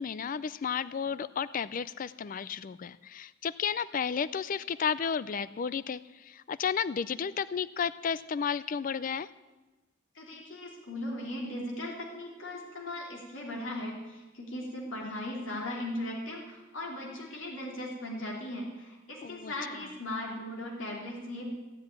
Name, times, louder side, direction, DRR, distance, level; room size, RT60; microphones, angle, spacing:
voice 1, 0.0-9.3 19.2-19.5, left 7 dB, 45° left, 17 dB, 0.4 m, -33 dB
voice 2, 10.1-21.5, left 1 dB, 75° left, -1 dB, 3.0 m, -38 dB
15.0 x 7.9 x 9.5 m, 1.2 s
head